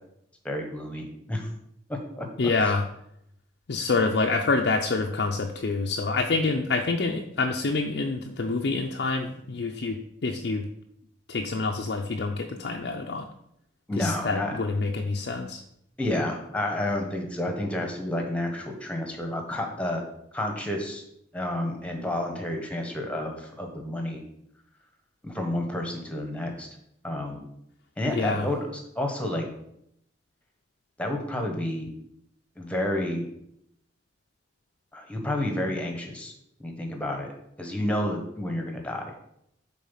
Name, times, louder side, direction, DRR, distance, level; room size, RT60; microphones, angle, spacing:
voice 1, 0.4-1.5 1.9-2.3 13.9-14.5 16.0-20.0 20.3-21.0 21.3-24.2 25.2-26.7 27.0-27.4 28.0-28.6 28.9-29.5 31.0-31.9 32.6-33.3 34.9-36.3 36.6-37.3 37.6-39.1, left 1 dB, 5° left, 3 dB, 1.1 m, -30 dB
voice 2, 2.4-2.8 3.7-10.7 11.3-13.3 14.0-15.6 28.1-28.5, left 3 dB, 60° left, 2 dB, 0.5 m, -27 dB
7.4 x 3.9 x 5.6 m, 0.76 s
head